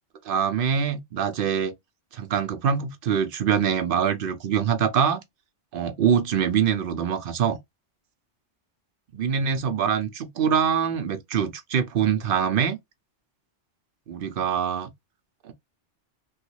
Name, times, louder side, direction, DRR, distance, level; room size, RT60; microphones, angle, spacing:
voice 1, 0.2-1.7 2.1-5.2 5.7-7.6 9.1-12.8 14.1-14.9 15.4-15.5, right 7 dB, 60° right, 0.7 m, -24 dB
3.1 x 2.3 x 3.1 m
omnidirectional pair, 1.2 m